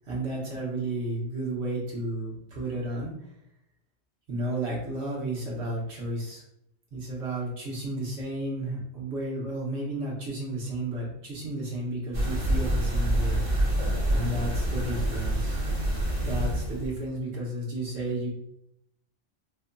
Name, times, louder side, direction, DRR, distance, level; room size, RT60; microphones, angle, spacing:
voice 1, 0.1-3.1 4.3-6.4 6.9-13.4 14.1-15.6 16.2-18.3, right 1 dB, 65° right, -4 dB, 1.4 m, -32 dB
sound 1, 12.1-17.0, right 1 dB, 30° right, 1.0 m, -27 dB
4.8 x 2.6 x 2.2 m, 0.78 s
omnidirectional pair, 1.3 m